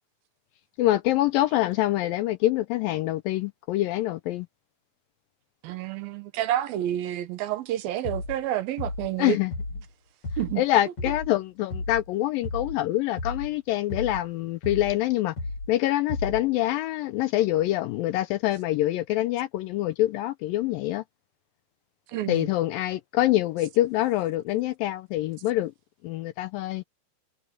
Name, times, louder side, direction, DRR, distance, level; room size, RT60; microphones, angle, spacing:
voice 1, 0.8-4.5 9.2-9.5 10.6-15.3 15.7-21.0 22.3-25.7 26.0-26.8, left 15 dB, 80° left, 2.1 m, -25 dB
voice 2, 5.6-9.4 10.4-10.6 22.1-22.5, right 12 dB, 75° right, 2.7 m, -29 dB
sound 1, 8.0-8.4 8.8-9.2 9.5-9.9 10.2-10.6 11.0-11.3 11.7-12.1 12.4-12.8 13.2-13.5 13.9-14.3 14.6-15.0 15.4-15.7 16.1-16.5, left 2 dB, 45° left, 8.9 m, -33 dB
omnidirectional pair, 4.5 m